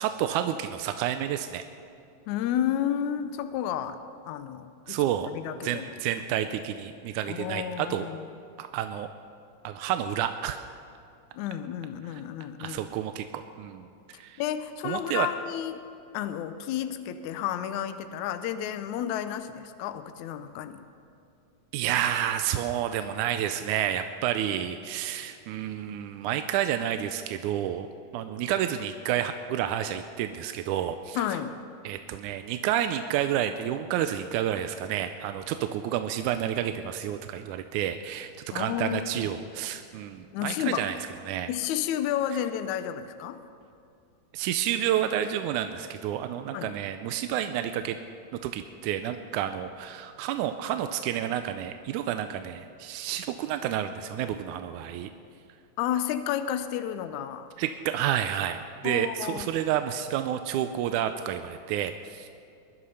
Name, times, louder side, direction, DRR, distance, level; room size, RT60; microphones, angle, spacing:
voice 1, 0.0-1.6 4.9-5.3 5.6-8.1 8.6-9.1 9.6-10.6 12.1-12.2 12.6-14.4 14.8-15.3 21.7-27.9 28.1-31.3 31.9-41.0 41.3-41.5 44.3-48.0 48.4-55.1 57.6-62.3, right 10 dB, 80° right, 8 dB, 2.0 m, -30 dB
voice 2, 2.3-4.0 4.3-5.0 5.3-5.9 7.3-8.2 11.3-12.8 14.4-15.9 16.1-20.8 31.1-31.5 38.5-39.3 40.3-40.9 41.5-43.4 46.5-46.7 55.8-57.5 58.8-59.5, left 10 dB, 75° left, 10 dB, 2.0 m, -31 dB
21.5 x 11.5 x 5.6 m, 2.5 s
omnidirectional pair, 3.6 m